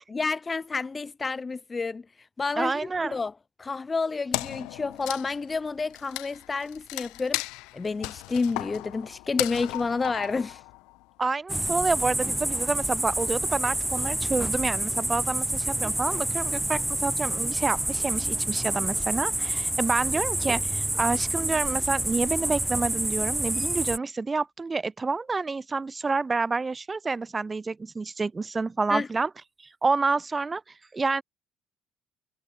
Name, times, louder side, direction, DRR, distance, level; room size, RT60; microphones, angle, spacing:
voice 1, 0.1-2.7 3.1-3.3 3.6-7.4 7.7-10.6 28.9-29.1, left 4 dB, 30° left, 1.1 m, -30 dB
voice 2, 2.6-3.2 11.2-29.3 29.8-30.6 30.9-31.2, right 4 dB, 25° right, 4.4 m, -28 dB
Wood, 4.3-11.0, left 23 dB, 70° left, 1.4 m, -35 dB
sound 1, 11.5-24.0, right 1 dB, 10° right, 3.8 m, -28 dB
hypercardioid pair, 55°, 0 cm